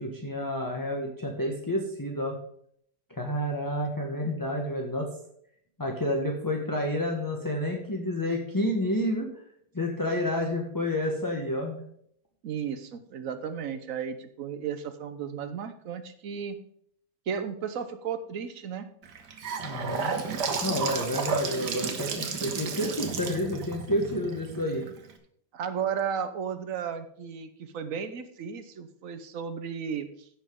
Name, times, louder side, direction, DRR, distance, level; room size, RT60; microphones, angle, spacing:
voice 1, 0.0-2.4 3.1-5.1 5.8-9.3 9.7-11.8 19.6-20.1 20.6-24.8, left 1 dB, 15° left, 1 dB, 0.8 m, -29 dB
voice 2, 12.4-16.6 17.3-18.9 25.5-30.3, right 7 dB, 60° right, 10 dB, 1.1 m, -34 dB
Gurgling / Sink (filling or washing) / Bathtub (filling or washing), 19.0-25.1, right 5 dB, 75° right, 1.7 m, -32 dB
15.0 x 5.8 x 3.7 m, 0.69 s
omnidirectional pair, 1.8 m